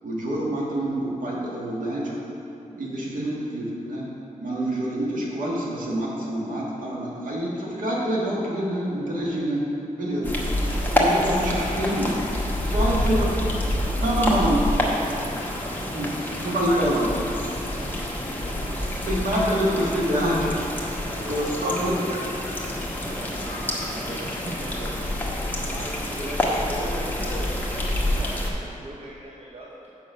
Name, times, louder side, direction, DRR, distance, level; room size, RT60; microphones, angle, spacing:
voice 1, 0.0-2.1 2.7-4.1 4.4-10.4 10.8-12.2 12.6-13.7 14.0-14.7 15.9-16.1 16.4-17.1 17.4-17.5 18.9-20.7 21.3-22.4 23.0-23.1, right 1 dB, 75° right, -5 dB, 1.7 m, -26 dB
sound 1, 10.2-28.5, left 1 dB, 15° left, 1.1 m, -27 dB
voice 2, 15.1-15.7 17.6-18.0 18.4-18.8 20.8-21.5 23.0-29.9, right 1 dB, 50° right, -4 dB, 0.8 m, -39 dB
6.7 x 5.4 x 5.4 m, 2.8 s
wide cardioid pair, 100°, 14 cm